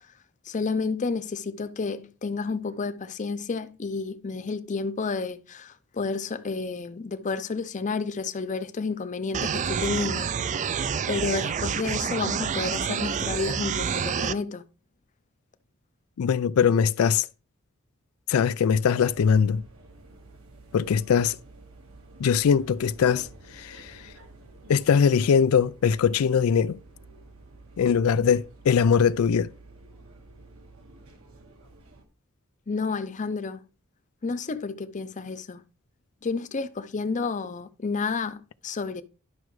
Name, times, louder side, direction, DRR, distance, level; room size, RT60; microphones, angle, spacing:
voice 1, 0.5-10.3 11.1-14.6 32.7-33.6 34.2-35.6 36.2-39.0, left 4 dB, 35° left, 0.5 m, -30 dB
sound 1, 9.3-14.3, right 7 dB, 35° right, 0.4 m, -28 dB
voice 2, 16.2-17.3 18.3-19.6 20.7-21.4 22.2-23.3 23.5-24.0 24.7-26.8 27.8-29.5, left 7 dB, 85° left, 0.4 m, -21 dB
sound 2, 19.0-32.0, right 2 dB, 75° right, 1.5 m, -50 dB
11.0 x 5.9 x 3.1 m
head